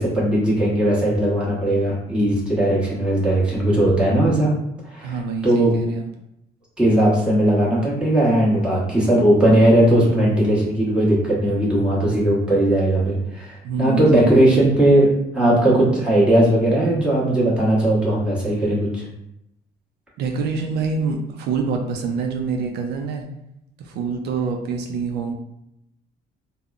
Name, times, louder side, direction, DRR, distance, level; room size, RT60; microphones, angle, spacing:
voice 1, 0.0-4.5 4.9-5.1 5.4-5.7 6.8-15.1 15.3-19.1, right 1 dB, 5° right, -7 dB, 1.1 m, -18 dB
voice 2, 5.0-6.1 13.6-14.6 20.2-23.3 23.8-25.3, right 5 dB, 75° right, 3 dB, 0.4 m, -26 dB
3.5 x 2.1 x 2.4 m, 0.82 s
cardioid pair, 110°, 17 cm